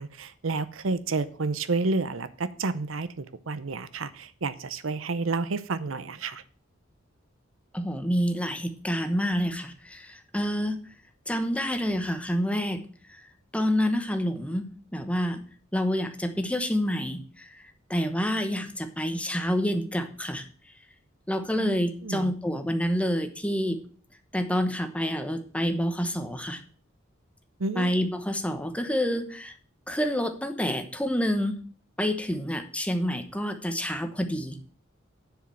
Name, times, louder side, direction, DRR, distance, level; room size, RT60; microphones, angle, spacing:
voice 1, 0.0-6.4 21.6-21.7 22.0-22.3 27.6-28.1, right 3 dB, 80° right, 14 dB, 0.7 m, -30 dB
voice 2, 7.7-10.8 11.3-12.8 13.1-13.2 13.5-15.4 15.7-17.6 17.9-20.4 21.3-23.8 24.3-26.6 27.8-29.5 29.9-31.6 32.0-34.6, equal, 5° left, 7 dB, 1.0 m, -28 dB
10.5 x 4.9 x 7.5 m, 0.43 s
head